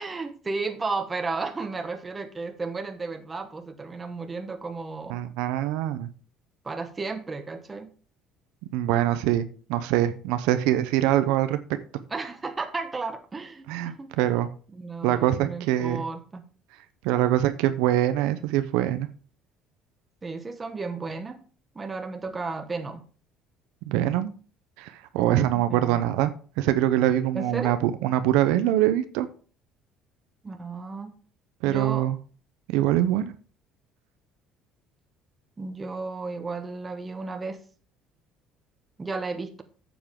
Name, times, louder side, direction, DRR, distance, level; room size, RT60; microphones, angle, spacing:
voice 1, 0.0-5.2 6.6-7.9 12.1-14.1 14.7-16.4 20.2-21.4 21.7-23.0 25.5-26.0 27.3-27.8 30.4-31.1 31.6-32.1 35.6-37.6 39.0-39.6, right 3 dB, 20° right, 7 dB, 1.4 m, -33 dB
voice 2, 5.1-6.1 8.7-9.4 9.7-11.6 13.7-14.5 15.0-16.0 17.0-19.1 23.9-24.3 24.8-29.3 31.6-32.2 32.7-33.3, right 13 dB, 85° right, 10 dB, 0.7 m, -24 dB
9.3 x 7.2 x 3.7 m, 0.41 s
cardioid pair, 105°, 0 cm